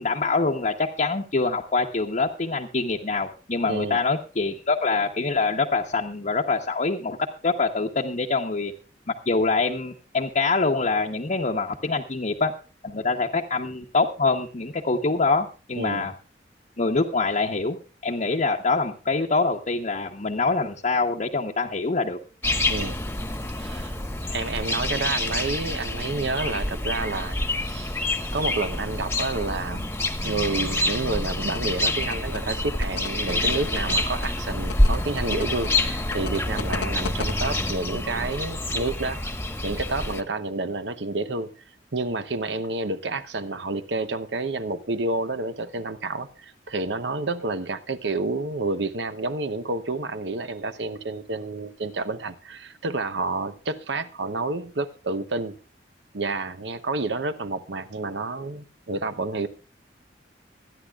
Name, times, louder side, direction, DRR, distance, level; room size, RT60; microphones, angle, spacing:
voice 1, 0.0-7.2 7.4-8.7 9.1-12.5 12.8-16.1 16.8-17.8 18.0-22.2, left 3 dB, 45° left, 0.9 m, -25 dB
voice 2, 3.7-4.0 15.8-16.1 22.7-23.0 23.6-24.0 24.3-28.0 28.3-29.9 30.2-39.2 39.6-41.5 41.9-55.6 56.1-59.5, right 3 dB, 70° right, 0.9 m, -29 dB
sound 1, 22.4-40.2, left 1 dB, 15° left, 1.3 m, -27 dB
sound 2, 31.4-37.3, left 5 dB, 70° left, 0.5 m, -35 dB
24.5 x 10.0 x 2.4 m
head